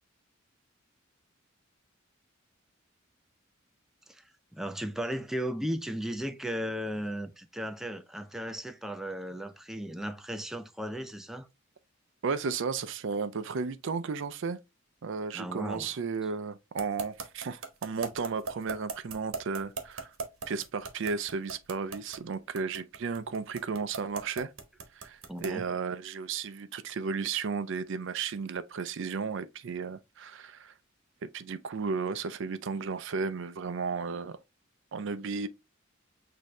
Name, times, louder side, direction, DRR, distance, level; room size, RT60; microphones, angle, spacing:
voice 1, 4.5-11.5 15.3-15.9 25.3-25.7, equal, ahead, 0.4 m, -36 dB
voice 2, 12.2-14.6 15.0-20.1 20.5-24.5 25.0-30.7 31.2-34.4 34.9-35.5, right 5 dB, 65° right, 0.5 m, -34 dB
sound 1, 16.8-25.6, right 4 dB, 85° right, 1.0 m, -38 dB
6.3 x 2.7 x 3.0 m
head